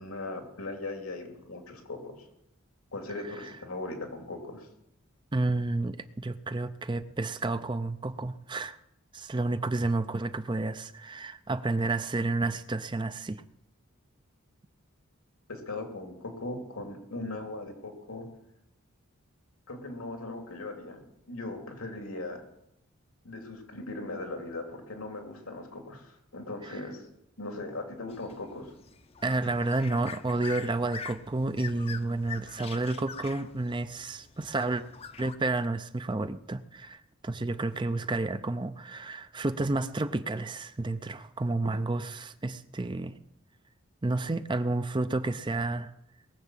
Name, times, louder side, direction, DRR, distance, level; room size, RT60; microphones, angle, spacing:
voice 1, 0.0-2.3 2.9-4.7 15.5-18.3 19.7-22.4 23.2-27.1 27.4-28.7, left 2 dB, 90° left, 3 dB, 2.7 m, -39 dB
voice 2, 5.3-8.8 9.1-13.4 26.6-26.8 29.2-34.8 35.2-43.2 44.0-45.9, right 2 dB, 20° right, 12 dB, 0.5 m, -30 dB
sound 1, 28.1-35.4, left 6 dB, 30° left, 0.7 m, -44 dB
21.0 x 7.3 x 7.5 m, 0.82 s
head